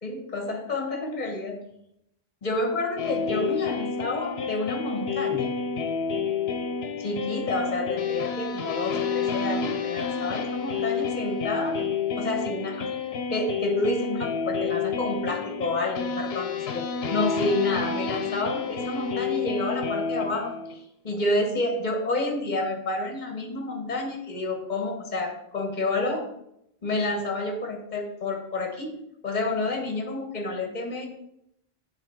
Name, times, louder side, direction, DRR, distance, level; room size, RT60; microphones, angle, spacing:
voice 1, 0.0-1.6 2.4-5.5 7.0-11.8 12.1-12.9 13.3-26.3 26.8-29.0 29.2-31.1, left 2 dB, 45° left, 3 dB, 1.2 m, -29 dB
sound 1, 3.0-20.7, left 5 dB, 80° left, 0.9 m, -29 dB
7.9 x 3.7 x 4.4 m, 0.79 s
omnidirectional pair, 1.1 m